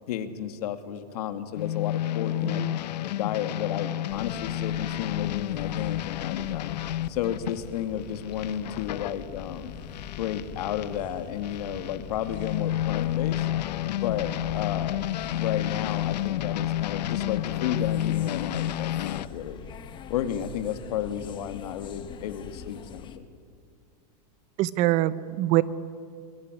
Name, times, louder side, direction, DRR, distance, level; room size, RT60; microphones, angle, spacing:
voice 1, 0.1-2.6 3.0-6.7 7.1-9.7 10.2-13.5 13.9-15.0 15.3-19.6 20.1-23.3, left 10 dB, 65° left, 8 dB, 2.3 m, -32 dB
sound 1, 1.5-11.0 11.4-19.3, left 13 dB, 85° left, 0.9 m, -31 dB
voice 2, 2.4-2.8 24.6-25.6, right 16 dB, 35° right, 16 dB, 0.9 m, -24 dB
sound 2, 4.1-23.2, left 7 dB, 20° left, 1.3 m, -44 dB
25.5 x 21.5 x 9.8 m, 2.3 s
supercardioid pair, 160°, 21 cm